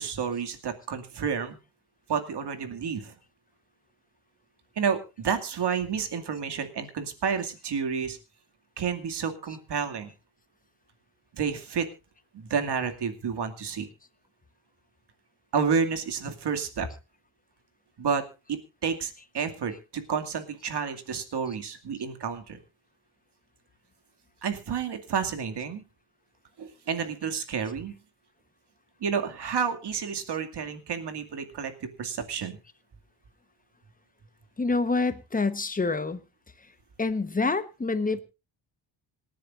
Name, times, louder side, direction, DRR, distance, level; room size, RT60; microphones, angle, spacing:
voice 1, 0.0-1.6 2.1-3.1 4.8-8.2 8.8-10.1 11.3-11.9 12.3-13.9 15.5-16.9 18.0-18.2 18.5-22.6 24.4-25.8 26.6-27.9 29.0-32.6, right 6 dB, 60° right, 2.4 m, -30 dB
voice 2, 34.6-36.2 37.0-38.2, left 3 dB, 20° left, 1.1 m, -27 dB
26.5 x 10.5 x 2.6 m
wide cardioid pair, 180°, 45 cm